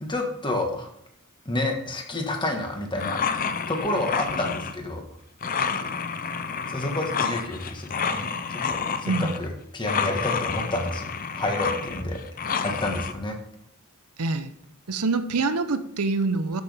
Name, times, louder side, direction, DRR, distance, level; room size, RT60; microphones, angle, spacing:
voice 1, 0.0-0.9 1.4-3.2 3.7-5.0 6.7-13.4, left 2 dB, 20° left, 2 dB, 1.5 m, -29 dB
sound 1, 3.0-4.7 5.4-9.4 9.9-13.1, left 6 dB, 40° left, 0.6 m, -29 dB
voice 2, 14.2-14.5 14.9-16.6, right 3 dB, 85° right, 11 dB, 0.8 m, -25 dB
13.0 x 6.3 x 3.6 m, 0.73 s
head